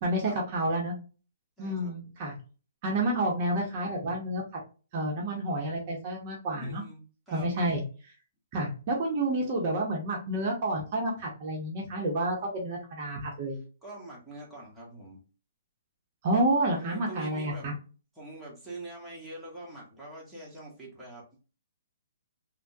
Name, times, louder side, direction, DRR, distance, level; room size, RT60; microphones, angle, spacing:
voice 1, 0.0-0.9 1.6-2.4 2.8-4.4 4.9-6.8 7.3-7.8 8.5-13.6 16.2-17.7, right 1 dB, 35° right, -1 dB, 0.8 m, -29 dB
voice 2, 1.6-1.9 6.5-7.5 13.8-15.2 16.7-17.8 18.1-21.2, right 2 dB, 5° right, -6 dB, 1.1 m, -44 dB
3.4 x 2.2 x 2.6 m, 0.35 s
hypercardioid pair, 155°, 0 cm